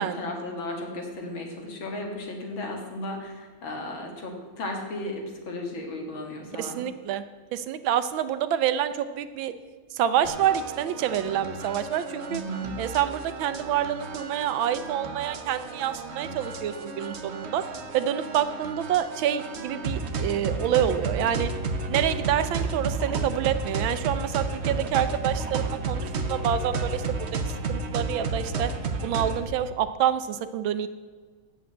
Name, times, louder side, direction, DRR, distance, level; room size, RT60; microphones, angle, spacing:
voice 1, 0.0-6.8 12.3-12.7, left 1 dB, 70° left, 2 dB, 2.5 m, -35 dB
voice 2, 6.6-7.2 7.5-9.5 9.9-12.4 12.8-17.6 17.9-21.5 21.9-27.3 27.7-28.7 29.0-30.9, right 10 dB, 75° right, 12 dB, 1.3 m, -27 dB
sound 1, 10.2-29.4, right 3 dB, 60° right, 0.7 m, -32 dB
8.4 x 7.3 x 8.6 m, 1.5 s
omnidirectional pair, 2.3 m